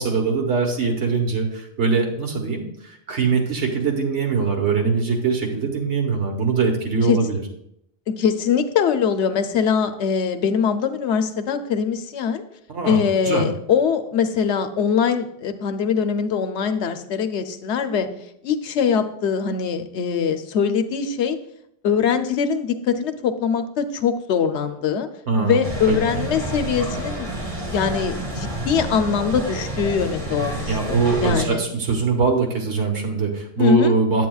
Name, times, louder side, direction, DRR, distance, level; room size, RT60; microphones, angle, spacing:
voice 1, 0.0-7.4 12.7-13.4 25.3-26.0 30.7-34.3, right 4 dB, 85° right, 2 dB, 1.5 m, -22 dB
voice 2, 8.1-12.4 12.8-18.1 18.4-21.4 21.8-25.1 25.4-27.3 27.7-31.7 33.6-33.9, left 7 dB, 80° left, 9 dB, 0.9 m, -22 dB
sound 1, 25.6-31.5, right 1 dB, 30° right, 1.4 m, -29 dB
8.5 x 8.4 x 2.3 m, 0.73 s
omnidirectional pair, 1.1 m